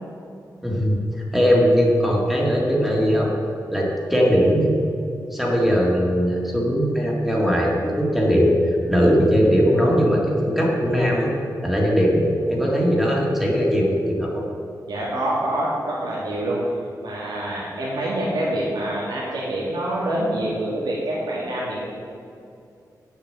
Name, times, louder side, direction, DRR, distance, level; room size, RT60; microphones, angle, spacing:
voice 1, 0.6-1.0 1.3-3.3 3.7-4.7 5.3-8.5 8.9-11.3 11.6-12.2 12.5-14.4, equal, 5° right, -3 dB, 1.8 m, -19 dB
voice 2, 14.9-16.6 17.0-21.9, right 1 dB, 90° right, -6 dB, 2.4 m, -26 dB
9.9 x 6.9 x 7.6 m, 2.5 s
wide cardioid pair, 180°, 7 cm